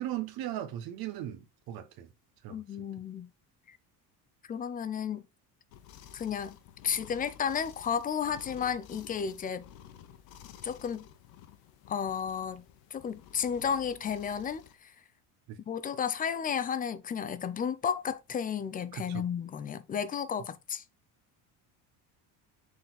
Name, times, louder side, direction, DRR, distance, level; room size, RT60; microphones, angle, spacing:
voice 1, 0.0-2.1 2.4-2.6 15.5-15.6 18.9-19.2, right 12 dB, 65° right, 1.1 m, -37 dB
voice 2, 2.5-3.3 3.7-3.8 4.5-5.2 6.1-6.6 6.8-9.6 10.6-11.1 11.9-12.6 12.9-14.9 15.7-20.8, left 7 dB, 25° left, 0.4 m, -33 dB
sound 1, 5.7-14.7, left 9 dB, 65° left, 1.0 m, -52 dB
6.7 x 4.1 x 3.9 m
cardioid pair, 155°, 39 cm